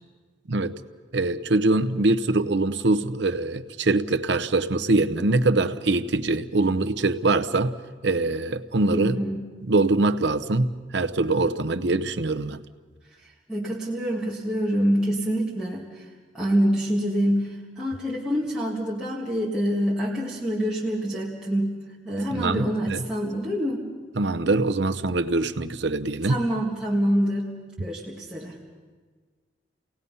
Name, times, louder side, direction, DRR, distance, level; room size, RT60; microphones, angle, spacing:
voice 1, 0.5-0.8 1.1-7.7 8.0-9.2 9.7-12.6 22.3-23.0 24.2-26.4, right 2 dB, 70° right, 10 dB, 0.8 m, -23 dB
voice 2, 8.9-9.5 13.5-16.1 16.3-21.8 22.0-23.9 26.2-28.6, equal, 5° right, -7 dB, 1.8 m, -26 dB
29.0 x 18.5 x 5.5 m, 1.4 s
head